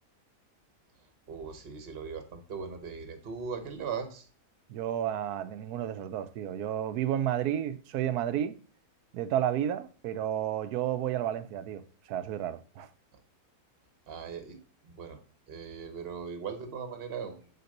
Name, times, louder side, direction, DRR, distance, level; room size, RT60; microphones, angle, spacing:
voice 1, 1.3-4.3 14.1-14.6 14.8-15.2 15.5-17.5, right 6 dB, 40° right, 1.2 m, -39 dB
voice 2, 4.7-8.6 9.1-11.8 12.1-12.9, right 10 dB, 75° right, 1.1 m, -31 dB
6.8 x 4.5 x 6.5 m
omnidirectional pair, 1.7 m